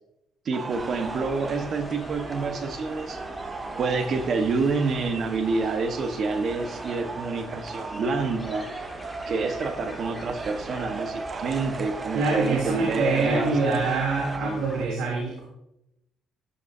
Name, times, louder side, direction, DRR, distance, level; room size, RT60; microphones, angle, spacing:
voice 1, 0.4-3.2 3.8-8.7 9.3-13.6 14.3-14.6, right 4 dB, 55° right, 7 dB, 1.4 m, -28 dB
sound 1, 0.5-14.4, right 4 dB, 35° right, 0.8 m, -37 dB
sound 2, 0.7-14.9, left 1 dB, 5° left, 2.5 m, -43 dB
voice 2, 12.1-15.4, right 3 dB, 85° right, -3 dB, 3.2 m, -25 dB
14.5 x 11.5 x 2.8 m, 0.84 s
cardioid pair, 105°, 0 cm